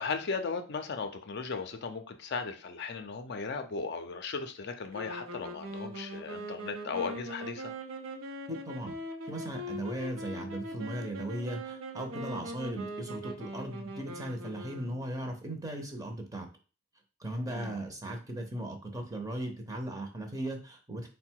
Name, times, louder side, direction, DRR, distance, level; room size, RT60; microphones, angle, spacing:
voice 1, 0.0-7.7 17.5-17.8, left 4 dB, 55° left, 7 dB, 0.5 m, -36 dB
sound 1, 4.9-15.3, equal, 85° right, 0.7 m, -41 dB
voice 2, 8.5-8.9 9.2-16.5 17.2-21.1, right 1 dB, 15° right, 4 dB, 0.6 m, -37 dB
3.8 x 2.2 x 4.5 m, 0.36 s
head